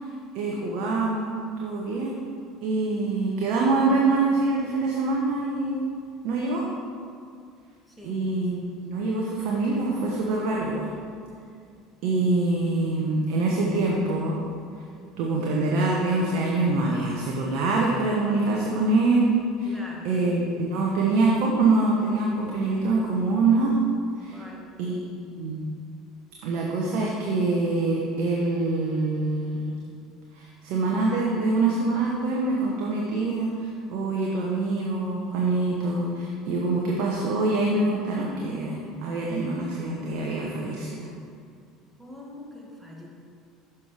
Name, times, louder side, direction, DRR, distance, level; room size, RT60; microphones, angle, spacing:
voice 1, 0.3-1.3 1.6-2.2 2.6-5.8 6.2-6.6 8.0-10.9 12.0-14.4 15.2-19.8 20.0-23.8 24.2-24.4 24.8-25.0 25.4-25.6 26.4-29.8 30.3-41.1, right 3 dB, 65° right, -2 dB, 1.0 m, -25 dB
voice 2, 19.7-20.1 24.3-24.7 42.0-43.1, left 1 dB, 5° right, -2 dB, 1.7 m, -43 dB
6.7 x 5.8 x 4.8 m, 2.3 s
hypercardioid pair, 85°, 0 cm